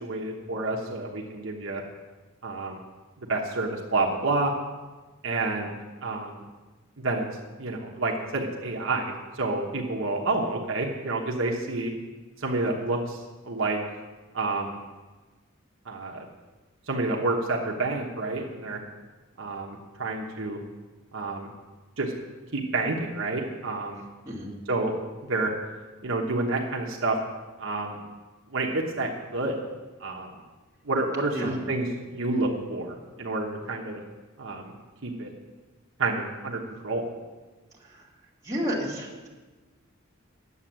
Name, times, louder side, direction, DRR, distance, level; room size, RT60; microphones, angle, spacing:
voice 1, 0.0-1.8 2.4-2.8 3.3-4.5 5.2-5.8 6.0-6.4 7.0-7.3 7.6-11.9 12.4-13.8 14.3-14.8 15.9-16.2 16.9-18.8 19.4-20.6 21.1-21.5 22.0-22.1 22.5-24.0 24.7-24.9 25.2-25.5 26.0-27.2 27.6-28.0 28.5-29.6 30.0-30.3 30.9-34.0 34.4-34.6 35.0-35.3 36.0-37.0, right 2 dB, 65° right, -1 dB, 1.1 m, -29 dB
voice 2, 24.2-24.5 31.3-31.6 37.8-38.1 38.4-39.3, equal, 15° right, -5 dB, 2.6 m, -31 dB
9.7 x 7.8 x 7.4 m, 1.3 s
head